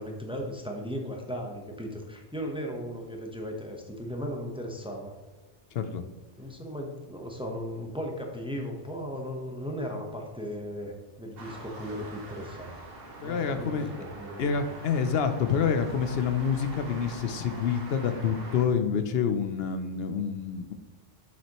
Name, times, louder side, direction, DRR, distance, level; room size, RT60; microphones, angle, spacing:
voice 1, 0.0-5.1 6.4-12.7 13.2-14.5, equal, 5° right, 1 dB, 0.8 m, -36 dB
sound 1, 11.4-18.6, right 2 dB, 65° right, 1.4 m, -44 dB
voice 2, 13.2-13.9 14.4-20.7, left 6 dB, 75° left, 9 dB, 0.8 m, -27 dB
7.3 x 6.2 x 2.9 m, 1.2 s
omnidirectional pair, 1.0 m